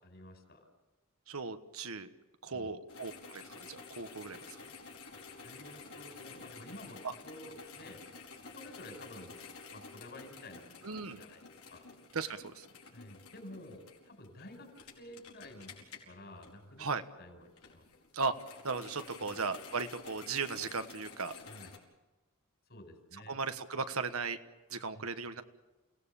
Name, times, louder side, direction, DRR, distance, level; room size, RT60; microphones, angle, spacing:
voice 1, 0.0-0.7 2.5-2.8 5.4-9.3 9.7-11.8 12.9-15.7 16.0-16.9 17.2-17.9 19.2-19.4 21.5-21.7 22.7-23.4 24.9-25.0, left 1 dB, 50° left, 4 dB, 5.2 m, -51 dB
voice 2, 1.3-2.1 2.4-4.6 10.8-11.2 12.1-12.6 16.8-17.0 18.1-18.3 18.6-21.3 23.3-24.4 24.7-25.4, right 4 dB, 75° right, 9 dB, 1.3 m, -37 dB
sound 1, 2.9-17.0 17.4-21.8, left 4 dB, 85° left, 4.8 m, -51 dB
29.0 x 18.0 x 7.1 m, 1.1 s
head